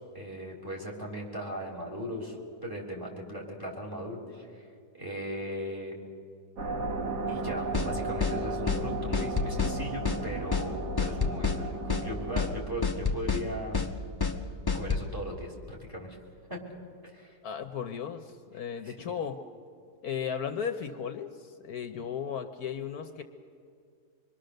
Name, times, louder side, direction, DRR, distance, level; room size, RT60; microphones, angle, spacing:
voice 1, 0.1-2.3 2.6-4.5 4.9-6.0 7.3-13.9 14.7-16.2 16.5-16.6 17.0-17.3 18.8-18.9, equal, 10° right, -1 dB, 3.4 m, -38 dB
sound 1, 6.6-12.6, right 2 dB, 80° right, 2.2 m, -34 dB
sound 2, 7.7-7.9 8.2-8.4 8.7-8.8 9.1-9.7 10.0-10.2 10.5-10.7 11.0-11.6 11.9-12.1 12.4-12.5 12.8-13.4 13.7-13.9 14.2-14.4 14.7-15.0, left 5 dB, 20° left, 0.8 m, -28 dB
voice 2, 17.4-19.4 20.0-23.2, left 7 dB, 70° left, 7 dB, 1.3 m, -35 dB
25.5 x 22.0 x 6.6 m, 2.2 s
omnidirectional pair, 1.8 m